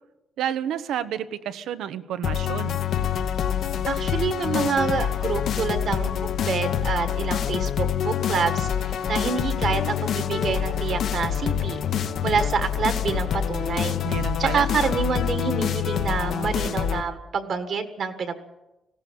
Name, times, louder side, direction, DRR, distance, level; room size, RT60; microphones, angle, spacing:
voice 1, 0.4-2.8 14.0-14.7, right 9 dB, 85° right, 11 dB, 1.1 m, -30 dB
sound 1, 2.2-17.0, left 9 dB, 55° left, 1.0 m, -26 dB
voice 2, 3.9-14.0 14.4-18.4, right 5 dB, 45° right, 8 dB, 1.6 m, -27 dB
19.5 x 16.0 x 8.7 m, 1.0 s
cardioid pair, 180°, 0 cm